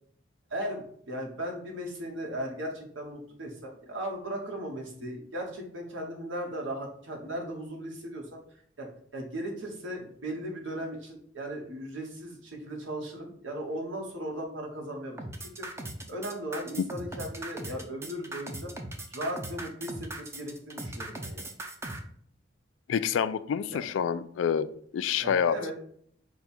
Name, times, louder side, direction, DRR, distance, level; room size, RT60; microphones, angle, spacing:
voice 1, 0.5-8.4 8.8-8.9 9.1-15.2 15.6-18.7 19.1-21.5 23.7-23.8 25.2-25.7, right 1 dB, 85° right, 0 dB, 1.2 m, -37 dB
sound 1, 15.2-22.0, right 1 dB, 15° right, 0.5 m, -39 dB
voice 2, 22.9-25.7, left 7 dB, 80° left, 14 dB, 0.3 m, -28 dB
5.2 x 2.3 x 4.3 m, 0.62 s
head